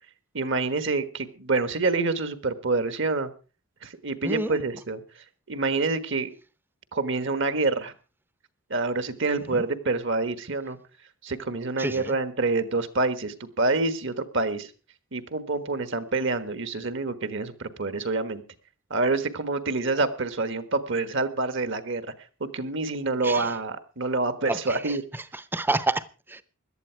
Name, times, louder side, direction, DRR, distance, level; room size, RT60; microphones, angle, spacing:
voice 1, 0.3-3.3 3.8-6.3 6.9-7.9 8.7-10.8 11.2-14.7 15.1-18.4 18.9-22.1 22.4-25.0, right 3 dB, 60° right, 12 dB, 1.4 m, -27 dB
voice 2, 4.2-4.6 9.5-9.6 11.8-12.1 23.2-23.6 24.5-26.4, right 2 dB, 10° right, 15 dB, 0.7 m, -30 dB
17.0 x 12.0 x 4.6 m, 0.34 s
head